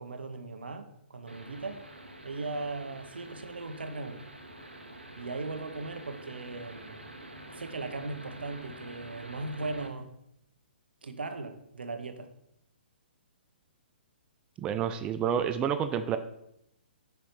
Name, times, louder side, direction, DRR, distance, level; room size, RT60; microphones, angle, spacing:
voice 1, 0.0-1.8 2.2-4.2 5.2-7.0 7.5-10.1 11.0-12.3, right 3 dB, 70° right, 8 dB, 0.9 m, -38 dB
sound 1, 1.3-9.9, right 1 dB, 90° right, 1.0 m, -47 dB
voice 2, 14.6-16.2, right 8 dB, 15° right, 9 dB, 0.3 m, -29 dB
8.0 x 5.5 x 3.2 m, 0.78 s
figure-of-eight pair, 125°, 6 cm